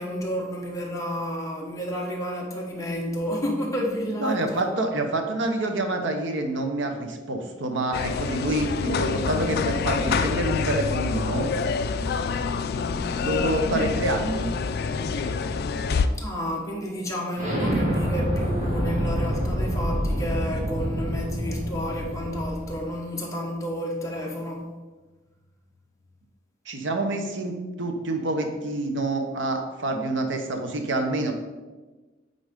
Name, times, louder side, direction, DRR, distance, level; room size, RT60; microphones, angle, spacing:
voice 1, 0.0-4.6 12.7-13.1 16.2-24.7, equal, 15° left, -2 dB, 1.1 m, -31 dB
voice 2, 4.2-11.5 13.1-14.5 26.7-31.3, right 2 dB, 65° right, 5 dB, 0.9 m, -27 dB
sound 1, 7.9-16.1, left 5 dB, 55° left, 0.4 m, -26 dB
Explosion, 17.4-22.9, equal, 40° right, 1.9 m, -27 dB
8.9 x 3.9 x 3.7 m, 1.2 s
head